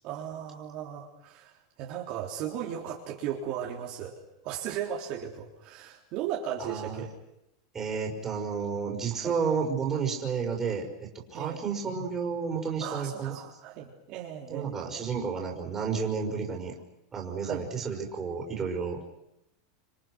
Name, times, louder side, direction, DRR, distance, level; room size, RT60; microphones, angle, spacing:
voice 1, 0.0-4.1 4.4-7.1 9.2-9.4 11.3-11.7 12.8-14.8 17.4-17.7, right 9 dB, 40° right, -1 dB, 3.7 m, -36 dB
voice 2, 6.6-7.0 7.7-10.9 11.3-13.5 14.5-16.7 17.1-19.0, right 5 dB, 15° right, 0 dB, 5.5 m, -31 dB
28.5 x 27.5 x 6.3 m, 0.86 s
supercardioid pair, 155°, 2 cm